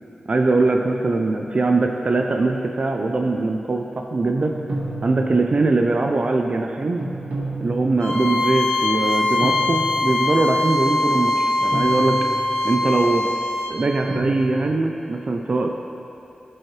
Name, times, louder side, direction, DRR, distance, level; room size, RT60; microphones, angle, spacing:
voice 1, 0.3-4.5 5.0-7.0 7.6-12.2 12.6-13.3 13.7-15.7, right 3 dB, 50° right, 3 dB, 0.4 m, -21 dB
sound 1, 4.4-5.7 7.0-8.2 9.4-10.3 11.7-12.7 14.1-14.4, right 2 dB, 80° right, 1.5 m, -30 dB
Bowed string instrument, 8.0-13.7, left 2 dB, 50° left, 1.1 m, -22 dB
12.5 x 4.6 x 3.1 m, 2.7 s
cardioid pair, 55°, 3 cm